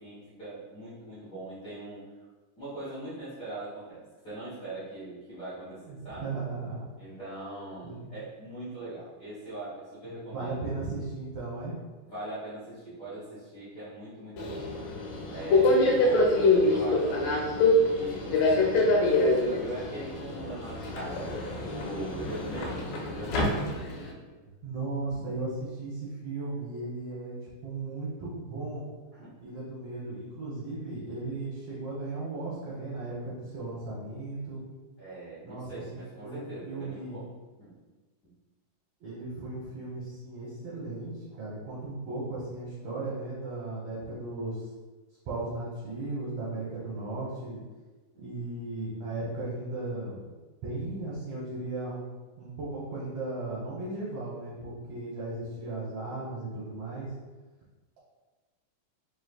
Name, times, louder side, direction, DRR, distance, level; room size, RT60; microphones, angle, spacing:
voice 1, 0.0-2.0 2.6-6.3 7.0-10.7 12.0-14.7 15.3-17.3 17.9-23.6 24.3-24.4 29.2-29.3 35.0-37.3 37.6-37.7 48.1-48.4, right 1 dB, 65° left, -13 dB, 0.8 m, -41 dB
voice 2, 5.8-6.8 7.8-8.1 10.3-11.7 24.6-28.8 29.4-34.6 35.4-35.7 36.2-37.2 39.0-44.7 45.2-47.6 48.2-50.3 50.6-52.0 52.4-57.1, right 2 dB, 65° right, -7 dB, 1.6 m, -36 dB
Subway metro underground, 14.4-24.1, left 2 dB, 85° left, 1.5 m, -25 dB
5.0 x 3.1 x 2.3 m, 1.3 s
omnidirectional pair, 3.7 m